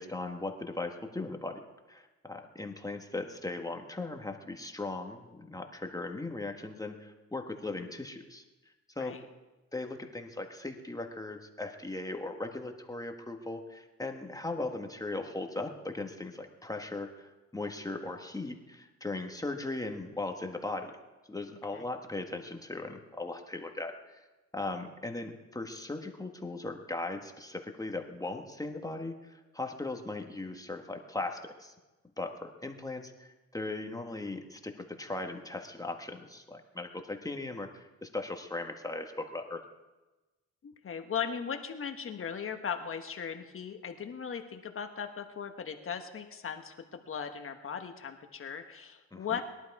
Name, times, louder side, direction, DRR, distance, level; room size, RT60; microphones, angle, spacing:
voice 1, 0.0-8.4 8.9-9.1 9.7-20.9 21.3-24.2 24.5-31.7 32.2-39.7 49.1-49.4, left 2 dB, 10° left, 4 dB, 1.5 m, -38 dB
voice 2, 40.6-49.4, left 7 dB, 45° left, 6 dB, 1.2 m, -38 dB
21.0 x 11.5 x 4.8 m, 1.1 s
cardioid pair, 90°, 30 cm